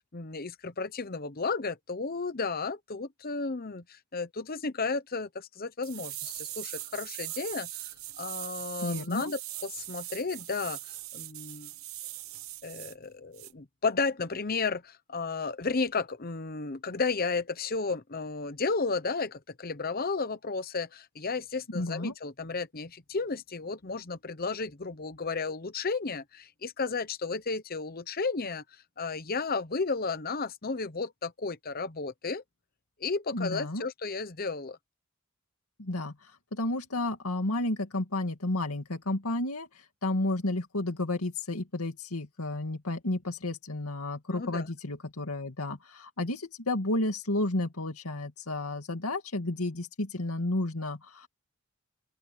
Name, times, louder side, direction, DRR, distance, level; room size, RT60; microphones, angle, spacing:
voice 1, 0.0-7.7 8.2-11.7 12.6-28.6 29.0-32.4 33.0-34.8 44.3-44.7, left 4 dB, 40° left, 0.9 m, -33 dB
sound 1, 5.8-12.9 13.3-13.5, right 16 dB, 75° right, 1.0 m, -41 dB
voice 2, 8.8-9.3 21.7-22.1 33.3-33.8 35.8-36.1 36.5-39.7 40.0-51.3, left 2 dB, 85° left, 2.4 m, -32 dB
open air
head